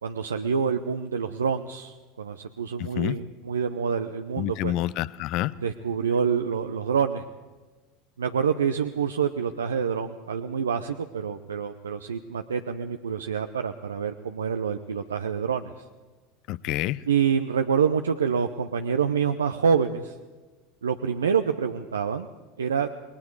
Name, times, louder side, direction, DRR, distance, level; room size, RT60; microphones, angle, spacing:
voice 1, 0.0-4.8 5.6-7.2 8.2-15.7 17.1-20.1 20.8-22.3 22.6-22.9, right 6 dB, 80° right, 7 dB, 0.7 m, -27 dB
voice 2, 2.8-3.2 4.4-5.5 16.5-17.0, left 16 dB, 55° left, 18 dB, 0.7 m, -28 dB
27.5 x 20.5 x 4.8 m, 1.3 s
figure-of-eight pair, 75°, 0 cm